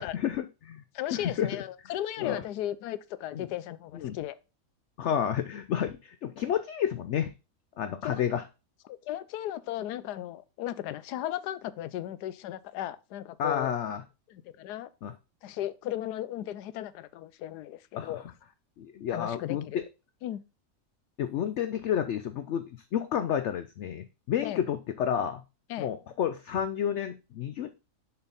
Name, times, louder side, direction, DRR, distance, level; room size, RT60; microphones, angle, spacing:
voice 1, 0.0-0.8 1.1-1.5 2.2-2.4 3.3-3.4 3.9-4.2 5.0-7.3 7.8-8.4 13.4-14.0 15.0-15.1 18.0-18.1 18.8-19.7 21.2-25.4 25.8-27.7, left 9 dB, 70° left, 0.7 m, -30 dB
voice 2, 0.9-4.3 8.0-8.2 8.9-13.7 14.3-14.9 15.4-18.2 19.1-19.8 20.2-20.4 24.4-24.6 25.7-25.9, left 12 dB, 85° left, 1.2 m, -36 dB
6.9 x 4.5 x 4.0 m
omnidirectional pair, 1.7 m